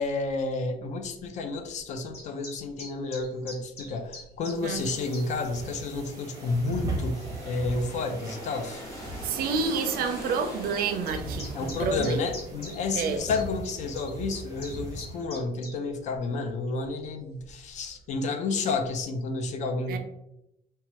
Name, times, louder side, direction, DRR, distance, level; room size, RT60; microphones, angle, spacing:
voice 1, 0.0-8.8 11.5-20.0, left 3 dB, 50° left, 6 dB, 0.4 m, -31 dB
sound 1, 2.1-5.3 6.0-6.1 7.0-7.1 8.3-8.4 8.7-8.8 9.0-9.1 10.8-15.8, left 2 dB, 80° left, 1.4 m, -43 dB
sound 2, 4.6-15.3, right 2 dB, 20° right, 0.6 m, -39 dB
sound 3, 6.0-13.6, equal, 15° left, 1.2 m, -43 dB
voice 2, 9.2-12.1 12.9-13.2 19.9-20.0, right 5 dB, 75° right, 7 dB, 0.4 m, -29 dB
3.0 x 2.2 x 2.8 m, 0.85 s
cardioid pair, 180°, 16 cm